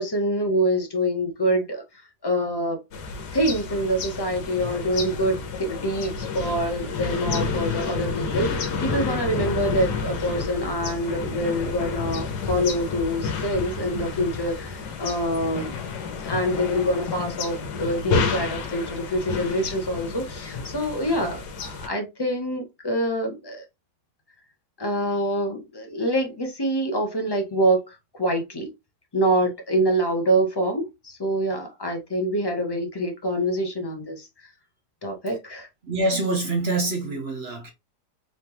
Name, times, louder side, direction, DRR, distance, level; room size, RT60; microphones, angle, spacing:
voice 1, 0.0-1.8 2.2-2.8 3.3-23.6 24.8-28.7 29.1-34.3 35.0-35.7, equal, 30° left, 0.4 m, -26 dB
sound 1, 2.9-21.9, left 4 dB, 75° left, 1.4 m, -30 dB
voice 2, 35.8-37.7, right 2 dB, 45° right, 0.9 m, -25 dB
4.1 x 3.3 x 2.9 m
omnidirectional pair, 1.8 m